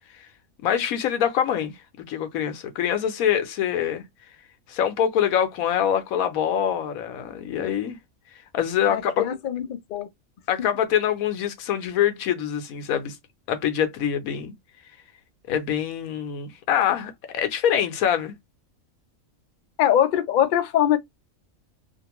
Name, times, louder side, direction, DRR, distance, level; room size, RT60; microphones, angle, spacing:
voice 1, 0.6-1.7 2.1-4.0 4.7-8.0 8.5-9.2 10.5-13.2 13.5-14.5 15.5-18.4, left 9 dB, 90° left, 1.1 m, -24 dB
voice 2, 8.9-10.1 10.6-10.7 19.8-21.0, left 10 dB, 70° left, 0.4 m, -22 dB
2.6 x 2.5 x 2.9 m
omnidirectional pair, 1.4 m